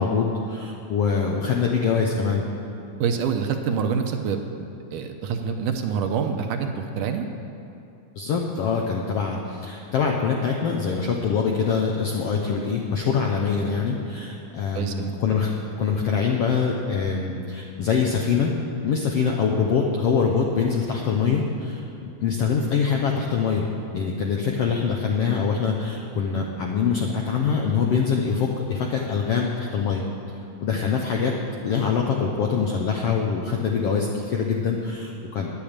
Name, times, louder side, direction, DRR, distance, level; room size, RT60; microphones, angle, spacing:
voice 1, 0.0-2.4 8.2-15.5 15.8-18.5 18.8-23.7 23.9-30.0 30.6-31.3 31.6-35.6, left 6 dB, 75° left, 0 dB, 1.4 m, -24 dB
voice 2, 3.0-7.3 14.7-15.1, right 6 dB, 75° right, 5 dB, 2.2 m, -26 dB
11.0 x 8.5 x 8.8 m, 2.9 s
omnidirectional pair, 3.9 m